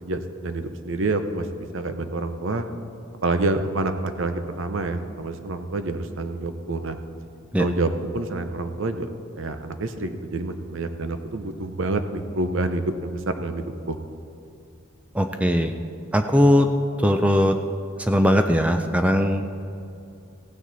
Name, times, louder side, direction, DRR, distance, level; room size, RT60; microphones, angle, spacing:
voice 1, 0.0-2.7 3.2-7.0 7.6-9.1 9.4-14.0, right 2 dB, 65° right, 8 dB, 0.7 m, -27 dB
voice 2, 15.1-15.7 16.1-16.7 17.0-17.5 18.0-19.6, equal, 5° right, 6 dB, 0.4 m, -19 dB
16.0 x 9.1 x 4.0 m, 2.6 s
head